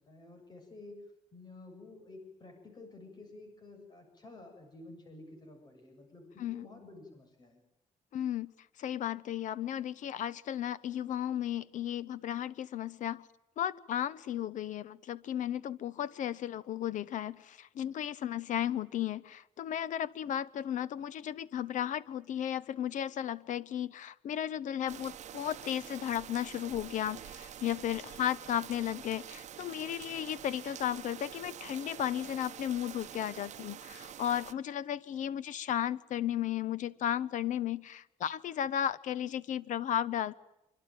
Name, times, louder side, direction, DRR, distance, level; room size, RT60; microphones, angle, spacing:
voice 1, 0.1-1.0 1.3-7.6, left 2 dB, 30° left, 5 dB, 7.4 m, -51 dB
voice 2, 8.1-8.5 8.8-13.3 13.6-40.3, left 10 dB, 70° left, 17 dB, 1.0 m, -34 dB
sound 1, 24.9-34.5, right 10 dB, 60° right, 1.2 m, -47 dB
25.5 x 25.0 x 9.2 m, 0.86 s
cardioid pair, 155°, 13 cm